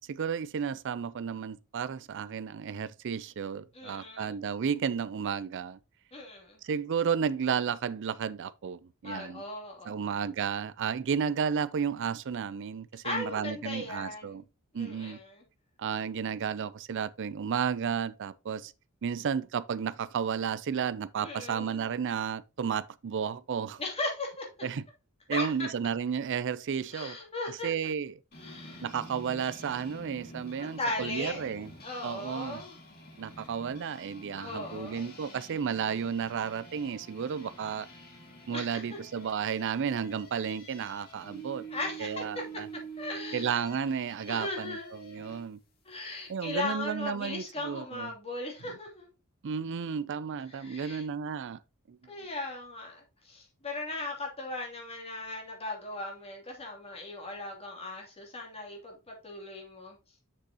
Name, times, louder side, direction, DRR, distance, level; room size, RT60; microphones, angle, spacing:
voice 1, 0.1-5.8 6.6-9.4 9.8-14.4 14.7-15.2 15.8-18.7 19.0-23.8 24.6-24.8 25.3-27.2 27.6-28.1 28.8-31.7 32.0-32.6 33.2-37.9 38.5-41.6 42.0-42.7 43.3-45.6 46.3-48.1 49.4-51.6 51.9-52.0, right 7 dB, 60° right, 0.4 m, -32 dB
voice 2, 3.7-4.4 6.1-6.6 9.0-10.1 13.0-14.4 14.8-15.4 21.2-21.9 23.8-24.7 25.3-25.7 26.9-27.7 28.3-28.9 30.6-31.5 31.8-32.8 33.4-33.5 34.3-35.1 38.5-39.0 41.7-42.4 43.0-43.5 44.3-44.9 45.8-49.1 50.5-51.0 52.1-60.0, left 2 dB, 30° left, 2.8 m, -38 dB
sound 1, 28.3-45.5, right 2 dB, 45° left, 2.6 m, -48 dB
7.5 x 6.5 x 2.9 m
head